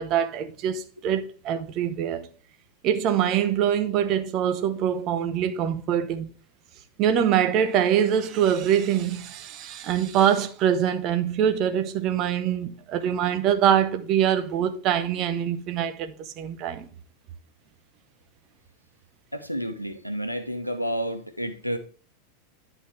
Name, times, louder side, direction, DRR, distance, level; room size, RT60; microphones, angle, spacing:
voice 1, 0.0-2.3 2.8-6.3 7.0-16.9, right 9 dB, 35° right, 0.9 m, -24 dB
voice 2, 19.3-21.8, equal, 90° left, 0.9 m, -30 dB
11.0 x 3.9 x 4.5 m
figure-of-eight pair, 90°, 0 cm